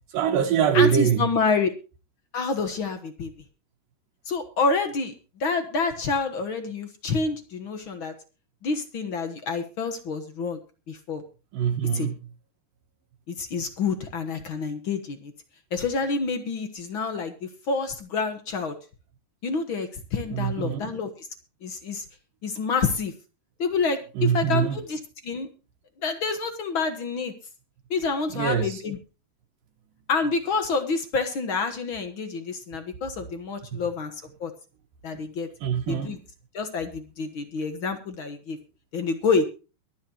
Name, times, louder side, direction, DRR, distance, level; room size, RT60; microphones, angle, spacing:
voice 1, 0.1-1.3 11.5-12.2 20.3-21.0 24.2-24.8 28.3-28.8 33.7-33.8 35.1-35.2 35.6-36.2, right 8 dB, 75° right, 2.9 m, -24 dB
voice 2, 0.7-1.7 2.3-3.3 4.3-5.1 5.4-8.1 8.6-10.6 10.9-11.2 11.9-12.1 13.3-15.3 15.7-18.7 19.4-21.3 21.6-22.0 22.4-23.1 23.6-25.5 26.0-27.3 27.9-29.0 30.1-34.1 34.4-34.5 35.0-35.5 35.9-36.2 36.5-38.6 38.9-39.5, left 4 dB, 60° left, 1.3 m, -28 dB
23.0 x 9.5 x 2.9 m
omnidirectional pair, 4.2 m